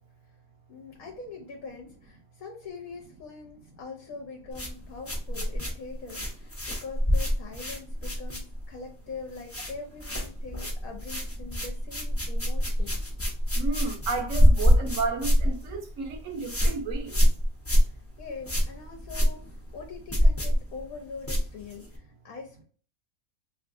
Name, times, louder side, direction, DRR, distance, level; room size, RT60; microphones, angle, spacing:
voice 1, 0.7-13.0 17.7-22.6, left 4 dB, 75° left, 1.2 m, -43 dB
sound 1, 4.5-8.9 9.1-9.7 10.0-22.0, equal, 15° left, 0.6 m, -25 dB
voice 2, 13.6-17.2, right 4 dB, 65° right, 1.2 m, -32 dB
3.5 x 3.0 x 2.5 m
omnidirectional pair, 1.5 m